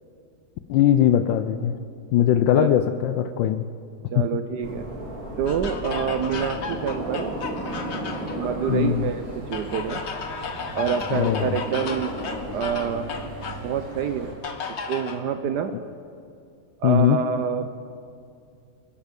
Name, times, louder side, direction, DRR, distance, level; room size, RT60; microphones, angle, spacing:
voice 1, 0.7-1.7 2.1-3.7 4.1-4.3 8.7-9.1 11.1-11.6 16.8-17.2, left 10 dB, 75° left, 10 dB, 1.2 m, -20 dB
voice 2, 4.1-4.9 5.4-7.3 8.4-10.0 10.7-12.2 12.5-13.1 13.6-14.3 14.9-15.8 16.8-17.7, right 7 dB, 70° right, 10 dB, 1.1 m, -27 dB
sound 1, 4.6-14.3, right 1 dB, 45° right, 4.8 m, -35 dB
sound 2, 5.5-8.4 9.5-13.7 14.4-15.2, left 4 dB, 45° left, 1.0 m, -34 dB
24.0 x 11.0 x 5.3 m, 2.4 s
omnidirectional pair, 2.1 m